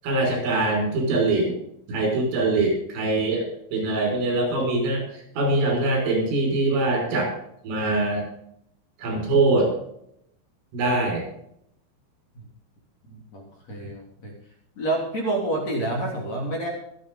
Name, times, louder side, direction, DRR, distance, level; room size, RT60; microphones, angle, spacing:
voice 1, 0.0-1.5 1.9-3.4 3.7-5.0 5.4-7.3 7.6-8.3 9.0-9.7 10.7-11.2, right 2 dB, 85° right, -1 dB, 8.3 m, -23 dB
voice 2, 13.1-14.3 14.8-16.7, right 2 dB, 35° left, -1 dB, 3.9 m, -28 dB
25.0 x 8.4 x 3.9 m, 0.74 s
omnidirectional pair, 5.5 m